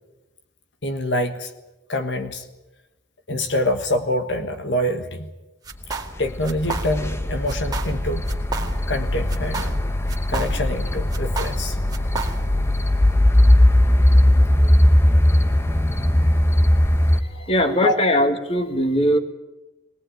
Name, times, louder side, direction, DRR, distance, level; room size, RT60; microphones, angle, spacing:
voice 1, 0.8-1.5 1.9-2.4 3.3-5.3 6.2-8.3 8.9-9.8 10.3-11.8 17.3-17.9, left 1 dB, 65° left, 6 dB, 1.5 m, -25 dB
sound 1, 5.7-6.2 6.4-7.2 7.5-8.0 8.3-9.0 9.3-10.8 11.1-12.6, right 4 dB, 20° right, 2.1 m, -31 dB
sound 2, 5.9-17.2, left 1 dB, 15° left, 1.0 m, -19 dB
voice 2, 17.5-19.2, equal, 30° left, 7 dB, 1.9 m, -20 dB
21.0 x 19.5 x 9.1 m, 1.0 s
head